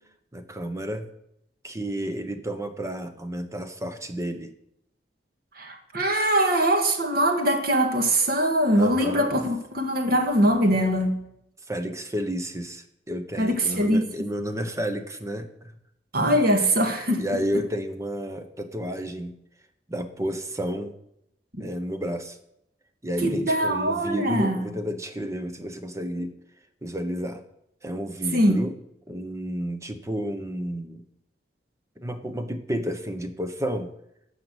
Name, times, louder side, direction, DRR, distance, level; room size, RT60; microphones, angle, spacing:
voice 1, 0.3-1.1 1.6-4.5 8.7-9.3 11.7-15.7 17.1-19.3 19.9-20.9 21.6-22.4 23.0-26.3 26.8-27.4 27.8-28.7 29.1-31.0 32.0-33.9, equal, 20° right, 8 dB, 1.1 m, -31 dB
voice 2, 5.6-11.2 13.4-14.1 16.1-17.2 21.6-21.7 23.2-24.6 28.3-28.6, right 1 dB, 60° right, 4 dB, 1.9 m, -22 dB
13.5 x 5.7 x 8.1 m, 0.78 s
head